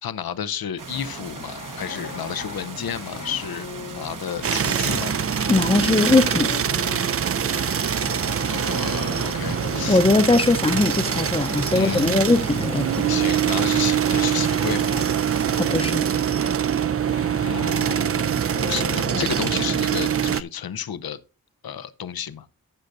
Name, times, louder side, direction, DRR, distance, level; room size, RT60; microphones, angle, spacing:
voice 1, 0.0-5.2 7.5-7.6 8.5-10.1 10.8-10.9 11.7-12.3 13.1-14.9 17.3-21.2 21.6-22.5, left 8 dB, 90° left, 0.6 m, -32 dB
sound 1, 0.8-15.6, right 4 dB, 60° right, 1.1 m, -38 dB
sound 2, 0.9-7.2 7.4-19.9, left 6 dB, 50° left, 0.8 m, -39 dB
sound 3, 4.4-20.4, right 8 dB, 40° right, 0.4 m, -24 dB
voice 2, 5.5-6.5 9.9-13.1 15.6-16.0, left 2 dB, 15° left, 0.6 m, -20 dB
14.5 x 6.5 x 2.6 m
wide cardioid pair, 65°, 35 cm